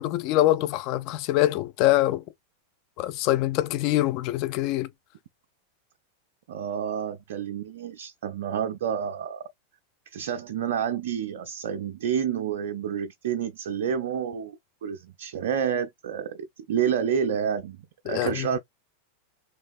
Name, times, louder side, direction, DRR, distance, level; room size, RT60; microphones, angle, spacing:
voice 1, 0.0-2.2 3.0-4.9 18.1-18.5, left 15 dB, 40° left, 0.5 m, -24 dB
voice 2, 6.5-9.4 10.1-14.6 14.8-17.8 18.1-18.6, right 8 dB, 55° right, 0.4 m, -29 dB
3.4 x 3.1 x 2.4 m
figure-of-eight pair, 90°, 0 cm